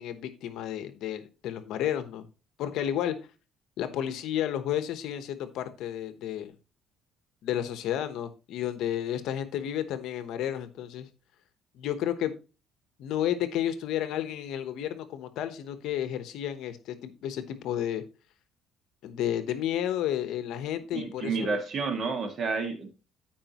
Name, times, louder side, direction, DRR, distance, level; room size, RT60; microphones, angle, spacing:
voice 1, 0.0-2.2 2.6-3.1 3.8-6.5 7.4-11.1 11.7-12.3 13.0-18.0 19.0-21.6, left 11 dB, 70° left, 10 dB, 1.0 m, -32 dB
voice 2, 20.9-23.0, right 4 dB, 40° right, 5 dB, 1.8 m, -30 dB
14.5 x 5.0 x 3.0 m, 0.32 s
cardioid pair, 140°, 0 cm